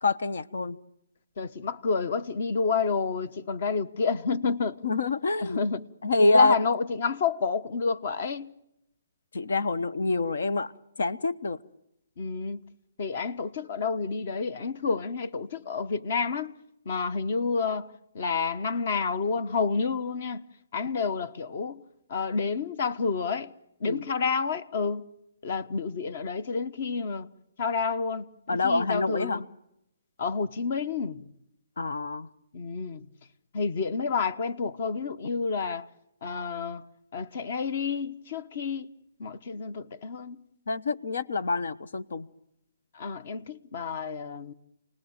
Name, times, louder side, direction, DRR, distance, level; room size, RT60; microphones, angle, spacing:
voice 1, 0.0-0.8 4.8-5.6 6.0-6.6 9.3-10.7 11.0-11.6 23.9-24.0 28.5-29.4 31.8-32.3 40.7-42.3, left 3 dB, 80° left, 1.1 m, -26 dB
voice 2, 1.4-4.8 5.4-5.9 6.2-8.5 12.2-12.6 13.0-16.6 16.8-20.4 20.7-21.8 22.1-23.5 23.8-25.0 25.4-27.3 27.6-29.4 30.2-31.3 32.5-33.1 33.5-35.9 36.2-36.8 37.1-38.9 39.2-40.5 42.9-44.5, left 5 dB, 50° left, 1.2 m, -29 dB
29.0 x 19.5 x 9.0 m
hypercardioid pair, 160°, 0 cm